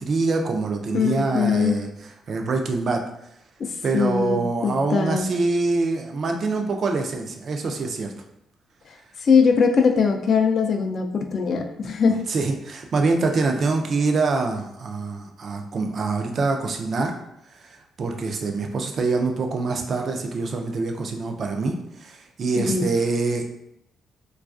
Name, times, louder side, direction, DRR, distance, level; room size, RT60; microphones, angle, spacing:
voice 1, 0.0-1.9 2.3-3.0 3.8-8.1 12.3-17.1 17.5-23.5, right 3 dB, 50° right, 3 dB, 0.4 m, -25 dB
voice 2, 0.9-1.8 3.6-5.3 8.9-12.2 22.6-22.8, left 5 dB, 55° left, 5 dB, 0.3 m, -21 dB
2.3 x 2.3 x 2.4 m, 0.79 s
cardioid pair, 90°, 0 cm